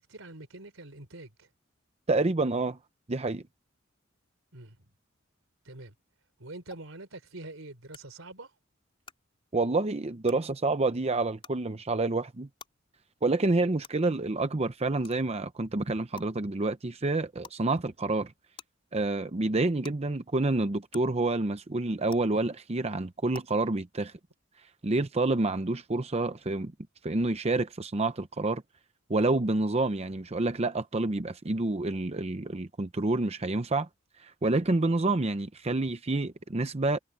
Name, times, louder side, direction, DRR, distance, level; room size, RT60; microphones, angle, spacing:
voice 1, 0.0-1.5 4.5-4.9 5.6-5.9 6.4-8.5, right 2 dB, 85° right, 3.6 m, -45 dB
voice 2, 2.1-2.8 3.1-3.4 9.5-12.5 13.2-18.3 18.9-24.1 24.8-26.7 27.0-28.6 29.1-33.9 34.2-37.0, right 2 dB, 30° right, 0.7 m, -28 dB
sound 1, 6.7-6.8 7.9-8.0 9.0-9.1 10.2-10.3 11.4-11.5 12.6-12.7 13.8-13.9 15.0-15.2 16.2-16.3 17.4-17.6 18.6-18.7 19.8-19.9 20.9-21.0 22.1-22.2 23.3-23.4, left 5 dB, 30° left, 4.5 m, -47 dB
head